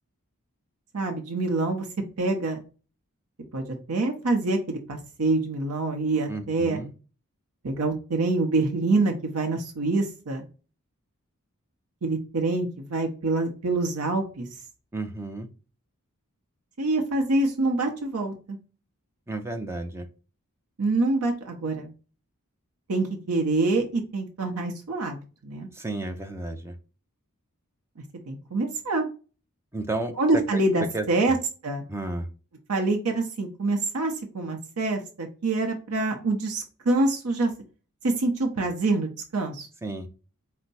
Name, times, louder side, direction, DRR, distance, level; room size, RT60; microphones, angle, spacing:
voice 1, 0.9-1.9 2.2-2.6 3.5-6.8 7.6-10.5 12.0-14.5 16.8-18.6 20.8-21.9 22.9-25.2 25.4-25.7 28.3-29.1 30.2-31.4 31.6-31.8 32.7-37.5 38.0-39.7, right 2 dB, 85° right, 4 dB, 0.8 m, -26 dB
voice 2, 6.3-6.9 14.9-15.5 19.3-20.1 25.7-26.8 29.7-30.4 30.9-31.3 31.9-32.3 39.8-40.1, right 2 dB, 10° right, 6 dB, 0.5 m, -32 dB
4.4 x 2.1 x 4.0 m, 0.35 s
head